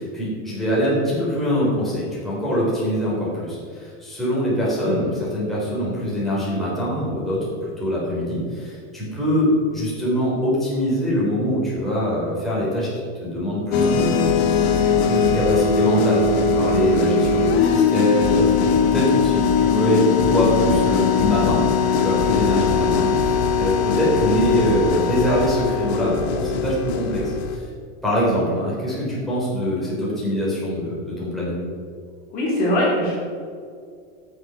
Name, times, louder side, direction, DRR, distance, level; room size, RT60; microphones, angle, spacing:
voice 1, 0.0-7.5 7.8-14.5 14.8-21.6 22.0-27.7 28.0-31.6, equal, ahead, -8 dB, 3.6 m, -23 dB
sound 1, 13.7-27.6, left 5 dB, 90° left, 1.7 m, -20 dB
voice 2, 32.3-33.2, left 1 dB, 30° left, -5 dB, 2.8 m, -21 dB
17.0 x 6.4 x 5.8 m, 2.2 s
supercardioid pair, 180°, 31 cm